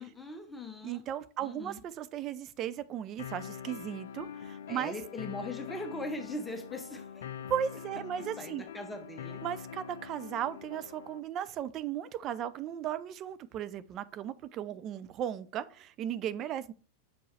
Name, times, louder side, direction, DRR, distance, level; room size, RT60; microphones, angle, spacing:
voice 1, 0.0-1.0 1.4-1.8 4.7-7.3 8.4-9.4, left 2 dB, 5° left, 1.0 m, -40 dB
voice 2, 0.8-4.9 7.5-8.6 9.4-16.7, right 10 dB, 35° right, 0.4 m, -36 dB
sound 1, 3.2-11.2, left 7 dB, 60° left, 0.3 m, -44 dB
6.7 x 4.5 x 3.2 m
figure-of-eight pair, 90°, 0 cm